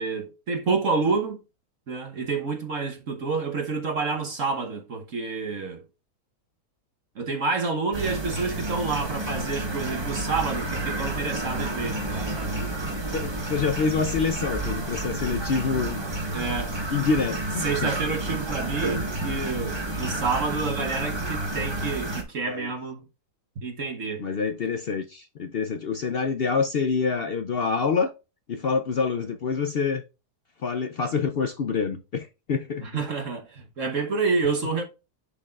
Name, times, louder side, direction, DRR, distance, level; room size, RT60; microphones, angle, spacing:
voice 1, 0.0-1.4 1.9-5.8 7.1-12.5 16.3-16.8 17.6-23.0 23.6-24.3 32.8-34.8, right 4 dB, 55° right, 1.4 m, -28 dB
sound 1, 7.9-22.2, right 2 dB, 20° right, 1.2 m, -30 dB
voice 2, 13.1-16.0 16.9-17.9 22.5-22.7 24.2-28.1 28.5-30.0 30.6-32.8, left 5 dB, 65° left, 0.6 m, -26 dB
10.5 x 4.3 x 2.4 m
omnidirectional pair, 1.7 m